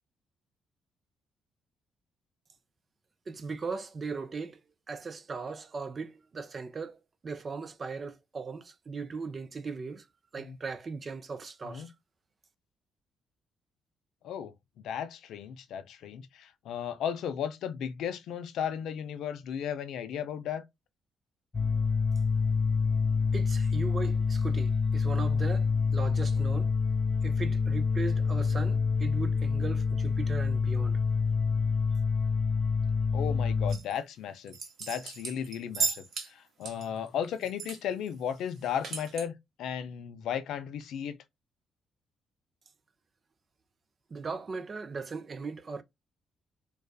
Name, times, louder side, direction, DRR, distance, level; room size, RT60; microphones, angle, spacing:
voice 1, 3.3-4.6 4.9-10.1 10.3-11.9 23.3-26.7 27.2-31.0 44.1-45.8, right 4 dB, 40° right, 0.4 m, -38 dB
voice 2, 14.8-20.6 33.1-41.2, left 8 dB, 80° left, 0.4 m, -35 dB
sound 1, 21.5-33.8, left 5 dB, 35° left, 1.1 m, -27 dB
sound 2, 33.7-34.0 34.5-36.3 36.6-37.8 38.1-38.2 38.5-39.3, right 4 dB, 60° right, 0.9 m, -35 dB
2.4 x 2.3 x 2.3 m
cardioid pair, 90°, 0 cm